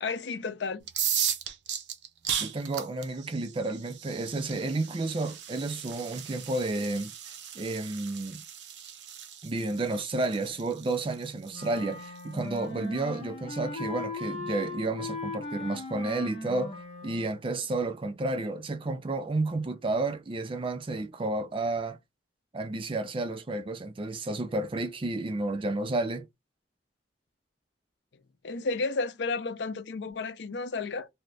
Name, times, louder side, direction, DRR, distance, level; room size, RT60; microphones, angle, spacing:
voice 1, 0.0-0.9 28.4-31.1, left 4 dB, 75° left, 0.5 m, -32 dB
sound 1, 0.8-12.6, right 9 dB, 80° right, 0.6 m, -36 dB
voice 2, 2.4-8.4 9.4-16.7 17.0-22.0 22.5-26.3, right 2 dB, 30° right, 0.4 m, -31 dB
Wind instrument woodwind instrument, 11.5-17.4, left 3 dB, 35° left, 0.8 m, -38 dB
2.7 x 2.5 x 3.2 m
head